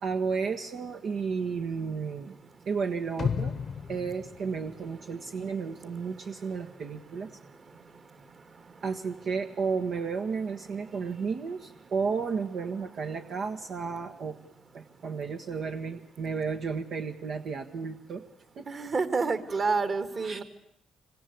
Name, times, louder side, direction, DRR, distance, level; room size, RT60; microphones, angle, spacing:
voice 1, 0.0-2.3 2.6-3.6 3.9-7.3 8.8-14.4 14.7-18.2 18.6-18.7 20.2-20.4, right 5 dB, 65° right, 4 dB, 1.5 m, -32 dB
sound 1, 3.2-5.3 5.7-5.8, left 6 dB, 55° left, 1.0 m, -34 dB
voice 2, 18.7-20.4, right 4 dB, 40° right, 11 dB, 2.3 m, -28 dB
25.5 x 25.5 x 8.5 m, 0.77 s
cardioid pair, 90°, 0 cm